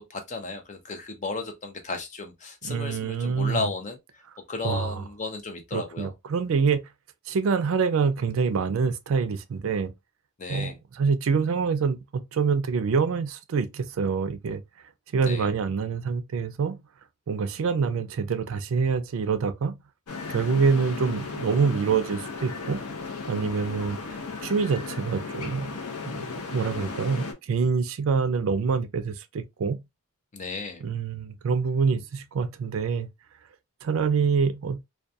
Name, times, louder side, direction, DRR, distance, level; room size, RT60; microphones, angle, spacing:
voice 1, 0.1-4.0 4.5-6.1 10.4-10.8 15.2-15.5 30.3-30.8, left 3 dB, 35° left, 0.5 m, -34 dB
voice 2, 2.6-3.7 4.6-5.0 5.7-6.8 7.3-9.9 10.5-14.6 15.1-16.8 17.3-19.8 20.3-22.8 23.3-24.0 24.4-25.8 26.0-29.8 30.8-33.1 33.8-34.8, right 5 dB, 65° right, 0.4 m, -26 dB
sound 1, 20.1-27.3, left 4 dB, 85° left, 0.6 m, -36 dB
2.3 x 2.2 x 2.5 m
head